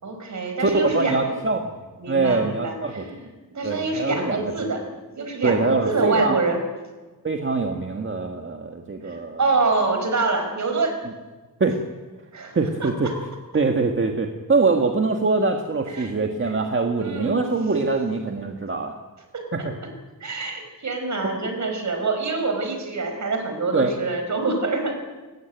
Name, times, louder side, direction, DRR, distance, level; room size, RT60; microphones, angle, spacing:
voice 1, 0.0-1.4 2.0-4.8 5.1-6.6 9.0-10.9 12.3-13.1 15.9-16.1 16.5-16.7 16.9-17.5 19.3-19.9 20.2-24.9, right 3 dB, 55° right, 5 dB, 5.1 m, -26 dB
voice 2, 0.6-1.6 2.1-3.0 3.6-4.5 5.4-6.4 7.2-9.4 11.6-11.7 12.5-13.1 13.5-18.9 19.5-19.7 23.7-23.9, right 3 dB, 35° right, 4 dB, 1.7 m, -23 dB
29.5 x 16.0 x 9.2 m, 1.3 s
wide cardioid pair, 170°, 35 cm